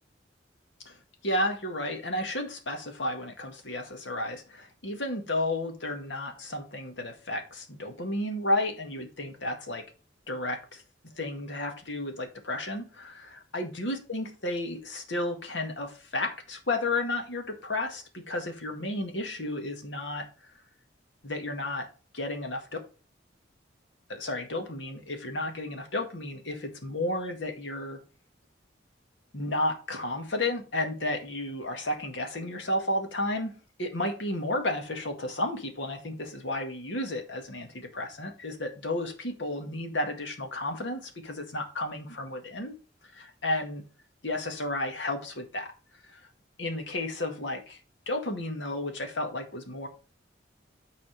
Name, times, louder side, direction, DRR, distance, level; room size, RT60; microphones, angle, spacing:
voice 1, 1.2-9.9 10.3-10.8 11.1-20.5 21.2-21.9 22.1-22.7 24.1-28.0 29.3-42.8 43.1-43.8 44.2-45.7 46.0-46.2 46.6-47.8 48.1-49.9, left 1 dB, 80° left, 1.9 m, -32 dB
9.6 x 4.2 x 5.2 m
head